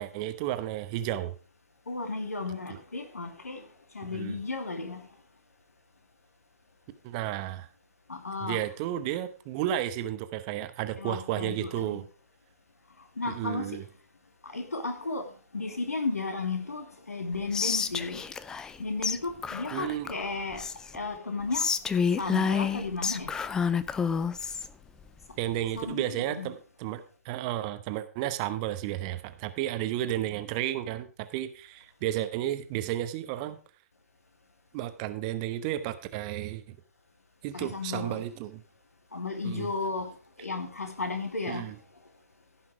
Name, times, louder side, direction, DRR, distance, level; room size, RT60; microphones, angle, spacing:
voice 1, 0.0-1.3 2.7-2.8 4.1-4.4 7.0-7.7 8.4-12.0 13.2-13.9 19.7-20.1 25.4-33.6 34.7-36.8 37.4-38.6 39.4-39.7 41.5-41.8, right 13 dB, 30° right, 0.9 m, -32 dB
voice 2, 1.9-3.7 3.9-5.0 8.1-8.6 11.0-12.0 13.2-13.8 14.4-18.3 18.8-20.7 20.9-21.7 22.2-23.4 25.8-26.5 37.5-38.2 39.1-41.7, left 3 dB, 75° left, 2.4 m, -34 dB
Whispering, 17.5-18.8 19.0-19.2 19.4-21.0 21.5-24.7, left 6 dB, 10° left, 0.4 m, -29 dB
15.5 x 5.8 x 4.7 m
figure-of-eight pair, 130°, 8 cm